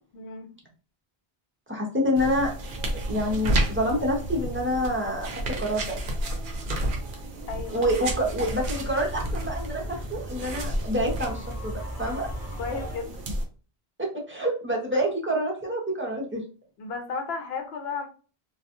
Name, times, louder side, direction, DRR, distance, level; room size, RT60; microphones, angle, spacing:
voice 1, 0.1-0.5 7.5-7.8 12.6-13.2 14.9-15.0 16.8-18.1, left 4 dB, 75° left, 6 dB, 0.9 m, -34 dB
voice 2, 1.7-2.5 3.1-5.3 5.6-6.0 7.7-9.8 10.1-12.3 14.0-16.4, equal, 15° right, -2 dB, 0.5 m, -27 dB
sound 1, 2.1-13.4, right 1 dB, 60° right, 0.7 m, -31 dB
sound 2, 8.0-13.0, equal, 15° left, 0.8 m, -38 dB
2.3 x 2.2 x 2.8 m, 0.36 s
omnidirectional pair, 1.1 m